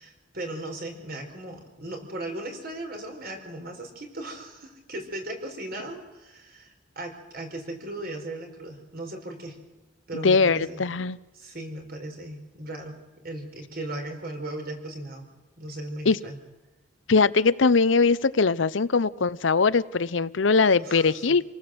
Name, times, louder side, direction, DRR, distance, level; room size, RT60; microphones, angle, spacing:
voice 1, 0.0-9.6 10.1-10.9 11.3-13.0 13.2-15.3 15.6-16.4 20.8-21.4, right 1 dB, 50° right, 4 dB, 4.8 m, -37 dB
voice 2, 10.2-11.2 16.0-16.2 17.1-21.4, left 4 dB, 75° left, 16 dB, 0.7 m, -21 dB
28.0 x 19.0 x 7.9 m, 1.1 s
head